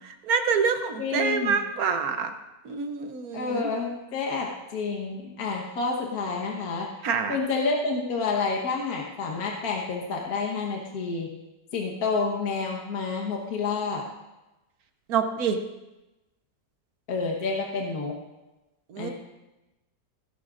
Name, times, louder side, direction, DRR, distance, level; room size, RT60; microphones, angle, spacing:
voice 1, 0.0-2.3 2.6-3.7 7.0-7.4 15.1-15.6 18.9-19.1, right 6 dB, 65° right, 8 dB, 1.2 m, -26 dB
voice 2, 1.0-1.6 3.3-6.9 7.3-11.3 11.7-14.0 17.1-18.1 19.0-19.1, left 4 dB, 60° left, 0 dB, 1.7 m, -29 dB
17.5 x 11.0 x 2.5 m, 1.0 s
omnidirectional pair, 1.8 m